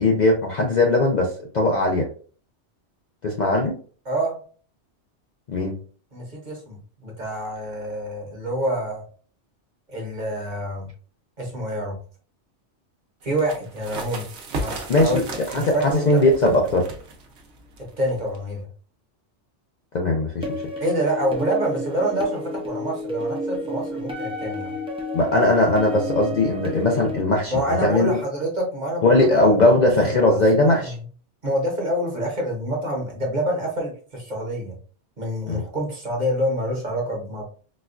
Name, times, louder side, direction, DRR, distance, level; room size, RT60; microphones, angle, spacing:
voice 1, 0.0-2.1 3.2-3.7 5.5-5.7 14.9-15.2 15.5-16.9 19.9-20.6 25.1-27.5 27.8-28.2 29.0-30.9 35.5-35.6, left 2 dB, 50° left, 0 dB, 0.5 m, -19 dB
voice 2, 4.1-4.4 6.1-9.0 9.9-10.9 11.4-12.0 13.2-15.3 15.5-16.2 17.8-18.7 20.8-24.7 27.5-29.2 30.3-31.0 31.4-34.8 35.2-37.4, right 1 dB, 40° right, 0 dB, 1.0 m, -27 dB
sound 1, 13.3-18.6, right 2 dB, 70° right, 1.0 m, -36 dB
sound 2, 20.4-27.2, left 1 dB, 10° right, 0.3 m, -31 dB
4.1 x 2.3 x 2.4 m, 0.42 s
omnidirectional pair, 1.2 m